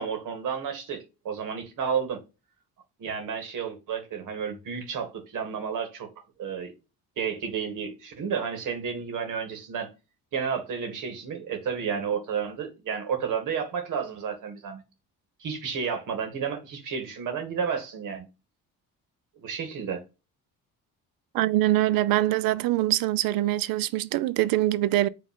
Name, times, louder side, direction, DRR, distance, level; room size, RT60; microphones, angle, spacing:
voice 1, 0.0-2.2 3.0-6.1 6.4-6.7 7.2-9.9 10.3-14.8 15.4-18.3 19.4-20.0, right 6 dB, 65° right, 2.3 m, -31 dB
voice 2, 21.3-25.1, right 15 dB, 90° right, 0.7 m, -23 dB
5.2 x 3.7 x 5.5 m
cardioid pair, 135°, 34 cm